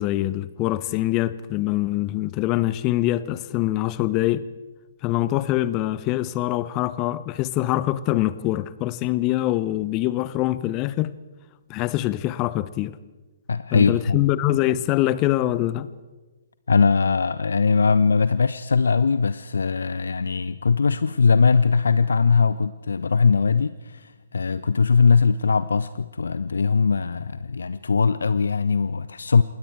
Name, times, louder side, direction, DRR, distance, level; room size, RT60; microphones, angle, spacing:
voice 1, 0.0-4.4 5.0-11.1 11.7-13.0 13.7-15.9, left 15 dB, 25° left, 0.8 m, -24 dB
voice 2, 13.5-14.3 16.7-29.4, left 5 dB, 65° left, 0.5 m, -20 dB
27.5 x 20.5 x 4.6 m
figure-of-eight pair, 125°, 0 cm